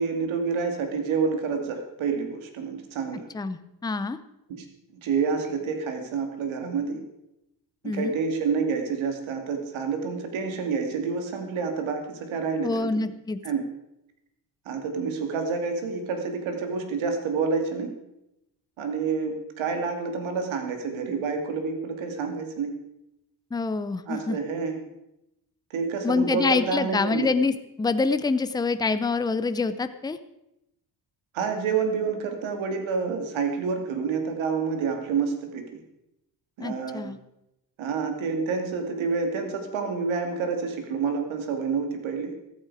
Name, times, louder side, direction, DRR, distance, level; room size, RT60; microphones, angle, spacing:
voice 1, 0.0-3.3 4.5-4.7 5.0-7.0 7.8-13.1 13.4-13.7 14.7-17.9 18.8-22.8 24.1-24.8 25.7-27.3 31.3-35.8 36.6-37.0 37.8-42.3, right 5 dB, 85° right, 5 dB, 2.7 m, -28 dB
voice 2, 3.3-4.2 7.8-8.1 12.6-13.4 23.5-24.4 26.0-30.2 36.6-37.2, left 4 dB, 10° left, 11 dB, 0.5 m, -26 dB
14.0 x 14.0 x 4.9 m, 0.87 s
cardioid pair, 160°, 46 cm